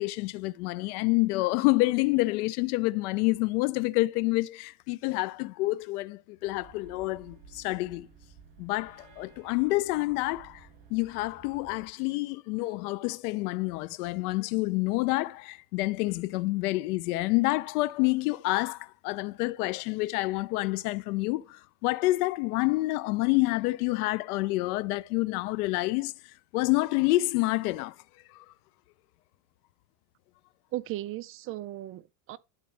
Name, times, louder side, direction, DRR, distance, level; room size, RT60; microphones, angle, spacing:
voice 1, 0.0-8.1 8.6-26.1 26.5-27.9 28.3-28.4, left 21 dB, 75° left, 0.6 m, -28 dB
sound 1, 6.4-11.9, right 6 dB, 50° right, 4.0 m, -54 dB
voice 2, 30.7-32.4, right 15 dB, 30° right, 0.4 m, -36 dB
11.5 x 4.0 x 3.3 m
supercardioid pair, 125°, 45 cm